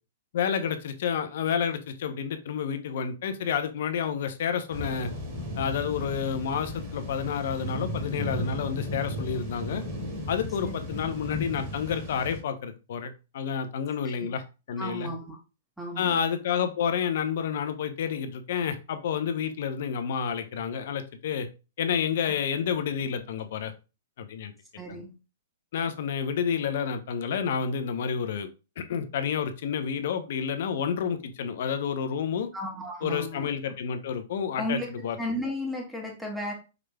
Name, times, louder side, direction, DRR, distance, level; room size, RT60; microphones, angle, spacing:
voice 1, 0.3-5.1 5.6-9.8 10.3-14.4 14.7-15.1 16.0-21.5 21.8-23.7 24.2-24.5 24.9-25.0 25.7-28.5 28.8-32.5 33.0-35.2, left 7 dB, 65° left, 9 dB, 0.6 m, -29 dB
sound 1, 4.7-12.4, left 1 dB, 45° right, 2.1 m, -35 dB
voice 2, 14.8-15.4 15.8-16.2 24.8-25.1 32.5-33.5 34.6-34.9 35.2-36.5, equal, ahead, -1 dB, 1.4 m, -34 dB
4.9 x 3.2 x 2.2 m, 0.31 s
hypercardioid pair, 130°, 0 cm